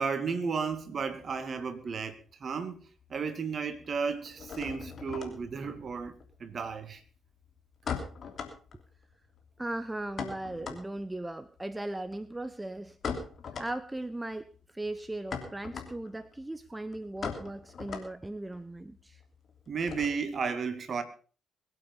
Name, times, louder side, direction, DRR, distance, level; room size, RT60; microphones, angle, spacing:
voice 1, 0.0-7.0 19.7-21.0, right 5 dB, 45° right, 2.3 m, -33 dB
sound 1, 0.6-2.2 2.5-3.2 3.4-20.5, left 6 dB, 50° left, 3.0 m, -42 dB
voice 2, 9.6-13.0 13.5-19.2, right 1 dB, 15° right, 0.8 m, -38 dB
21.5 x 8.7 x 5.4 m
figure-of-eight pair, 45°, 0 cm